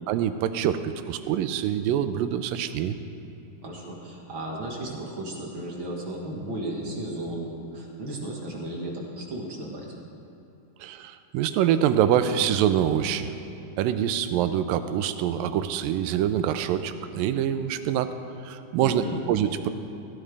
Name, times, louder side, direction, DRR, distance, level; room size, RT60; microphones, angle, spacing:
voice 1, 0.1-3.0 10.8-13.3 13.8-18.1 18.5-19.7, right 10 dB, 85° right, 10 dB, 2.3 m, -25 dB
voice 2, 3.6-9.9 18.8-19.2, right 1 dB, 50° right, -2 dB, 1.7 m, -34 dB
16.0 x 16.0 x 3.4 m, 3.0 s
omnidirectional pair, 3.9 m